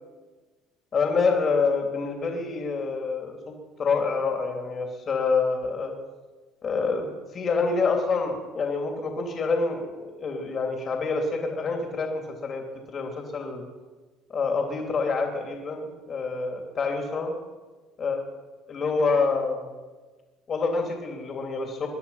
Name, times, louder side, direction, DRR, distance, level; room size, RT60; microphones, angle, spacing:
voice 1, 0.9-3.5 3.8-5.9 6.6-13.6 14.3-17.3 18.0-18.2 18.7-19.6 20.5-21.9, left 4 dB, 40° left, 2 dB, 2.9 m, -27 dB
22.5 x 10.5 x 5.7 m, 1.3 s
supercardioid pair, 85°, 0 cm